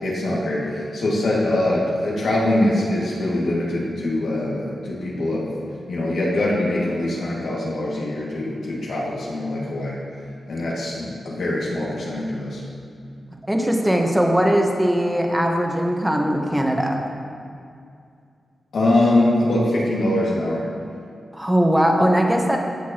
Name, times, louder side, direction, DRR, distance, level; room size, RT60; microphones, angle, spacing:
voice 1, 0.0-5.5 5.9-10.0 10.5-12.6 18.7-20.7, left 1 dB, 85° left, -5 dB, 2.1 m, -23 dB
voice 2, 13.5-17.0 21.3-22.6, equal, 10° right, 1 dB, 1.2 m, -20 dB
14.0 x 7.0 x 3.0 m, 2.3 s
cardioid pair, 65°, 0 cm